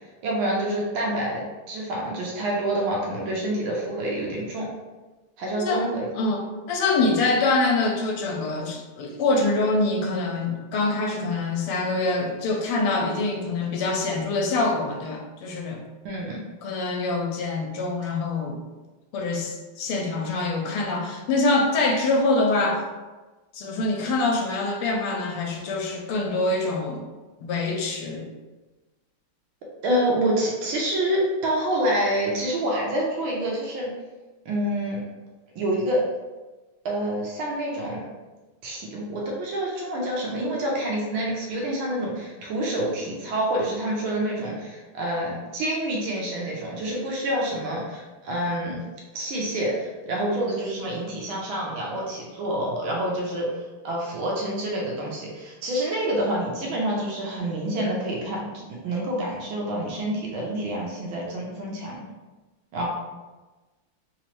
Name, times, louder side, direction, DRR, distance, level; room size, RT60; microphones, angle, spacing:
voice 1, 0.2-4.7 5.4-6.1 16.0-16.4 29.8-33.9 34.4-35.0 35.5-36.0 36.8-38.0 38.6-48.8 49.1-53.5 53.8-58.4 58.8-62.0 62.7-62.9, right 1 dB, 75° right, -2 dB, 1.5 m, -27 dB
voice 2, 5.5-5.8 6.2-6.4 6.7-15.8 16.6-18.6 19.1-22.8 23.5-27.1 27.4-28.3, left 3 dB, 80° left, 1 dB, 1.5 m, -25 dB
3.8 x 3.0 x 3.0 m, 1.2 s
omnidirectional pair, 2.4 m